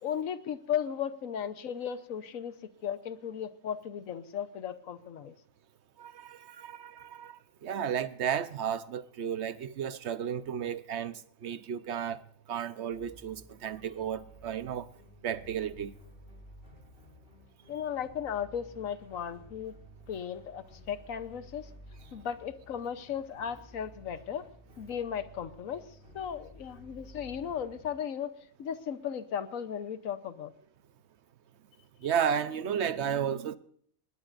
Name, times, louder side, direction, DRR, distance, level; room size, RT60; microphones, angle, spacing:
voice 1, 0.0-2.5 2.8-5.3 17.7-19.7 20.1-21.7 22.1-24.5 24.8-25.9 26.1-28.3 28.6-30.5, left 8 dB, 80° left, 1.4 m, -36 dB
voice 2, 6.0-14.9 15.2-15.9 32.0-33.6, right 8 dB, 60° right, 1.1 m, -33 dB
sound 1, 12.9-27.9, left 1 dB, 40° left, 5.7 m, -54 dB
20.5 x 19.0 x 2.6 m
omnidirectional pair, 1.4 m